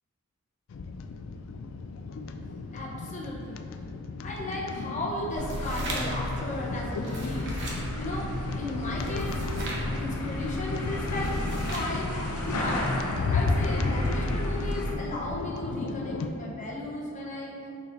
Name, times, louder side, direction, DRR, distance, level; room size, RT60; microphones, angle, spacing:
sound 1, 0.7-16.3, left 3 dB, 60° left, 0.3 m, -34 dB
voice 1, 2.7-3.6 4.2-7.5 8.0-9.4 10.0-12.1 12.4-13.0 13.3-17.7, left 1 dB, 35° left, -3 dB, 0.8 m, -35 dB
sound 2, 5.3-14.9, left 1 dB, 90° left, 0.8 m, -33 dB
sound 3, 5.3-6.3 6.9-7.8 9.0-9.9 11.1-12.0, right 2 dB, 55° right, 0.9 m, -39 dB
6.7 x 5.8 x 2.6 m, 2.7 s
head